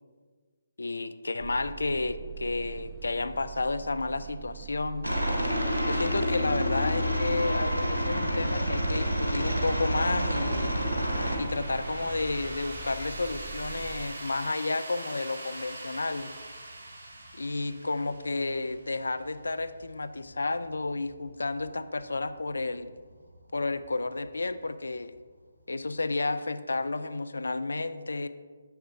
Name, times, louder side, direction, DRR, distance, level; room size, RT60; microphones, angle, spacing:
voice 1, 0.8-5.1 5.9-10.8 11.4-16.3 17.3-22.9 23.5-25.1 25.7-28.3, left 3 dB, 70° left, 13 dB, 0.3 m, -31 dB
sound 1, 1.4-14.1, right 4 dB, 20° right, 0.4 m, -43 dB
Aircraft, 5.0-11.3, equal, 90° right, 1.2 m, -28 dB
sound 2, 7.5-26.1, right 1 dB, 60° right, 1.1 m, -44 dB
7.3 x 6.6 x 2.7 m, 1.5 s
figure-of-eight pair, 145°, 0 cm